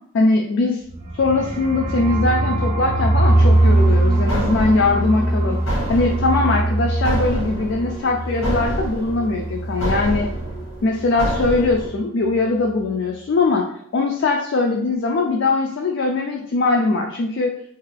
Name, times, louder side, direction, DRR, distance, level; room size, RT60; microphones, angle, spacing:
voice 1, 0.1-0.8 1.2-5.6 5.9-10.3 10.8-13.7 13.9-17.5, left 3 dB, 60° left, 1 dB, 0.3 m, -21 dB
sound 1, 0.9-10.6 10.9-11.0 11.3-11.8, right 1 dB, 35° right, 0.4 m, -21 dB
sound 2, 3.7-11.9, right 1 dB, 80° left, 1.0 m, -28 dB
2.6 x 2.4 x 3.2 m, 0.69 s
head